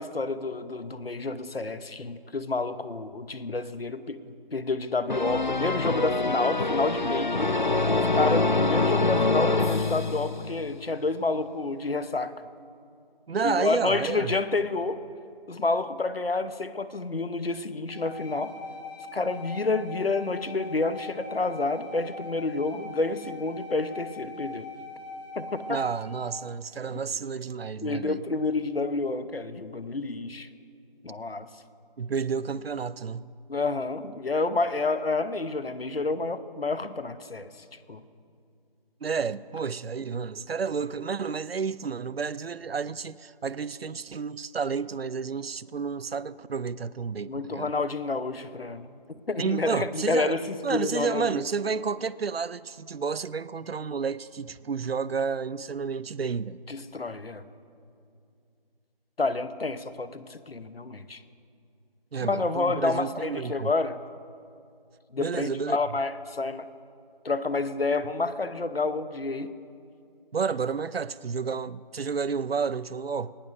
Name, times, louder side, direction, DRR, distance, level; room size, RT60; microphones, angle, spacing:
voice 1, 0.0-4.2 4.5-7.5 8.1-12.3 13.4-15.0 15.5-18.5 19.1-24.7 25.4-25.8 27.8-30.5 31.0-31.5 33.5-37.5 37.9-38.0 47.3-48.9 49.3-51.4 56.7-57.4 59.2-61.2 62.2-64.0 65.1-66.7 67.2-69.5, left 3 dB, 80° left, 0.9 m, -29 dB
sound 1, 5.1-10.7, left 3 dB, 55° left, 0.5 m, -25 dB
voice 2, 13.3-14.3 25.7-28.2 32.0-33.3 39.0-47.7 49.4-50.4 50.6-56.6 62.1-63.7 65.2-65.8 70.3-73.3, right 5 dB, 85° right, 0.5 m, -31 dB
sound 2, 17.9-26.1, left 1 dB, 20° left, 4.1 m, -41 dB
20.0 x 18.5 x 2.6 m
figure-of-eight pair, 180°, 29 cm